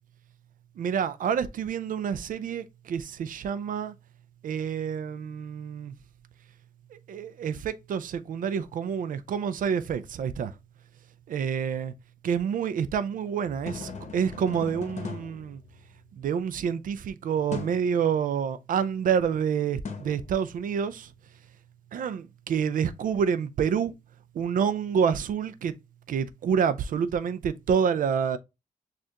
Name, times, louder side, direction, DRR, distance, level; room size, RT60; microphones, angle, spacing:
voice 1, 0.8-3.9 4.4-5.9 6.9-10.5 11.3-11.9 12.2-15.6 16.2-21.1 21.9-23.9 24.3-25.7 26.1-28.4, right 7 dB, 70° right, 0.5 m, -28 dB
sound 1, 13.5-16.3 17.5-17.9 19.9-20.9, left 5 dB, 50° left, 0.9 m, -40 dB
6.4 x 2.5 x 2.8 m
cardioid pair, 95°, 15 cm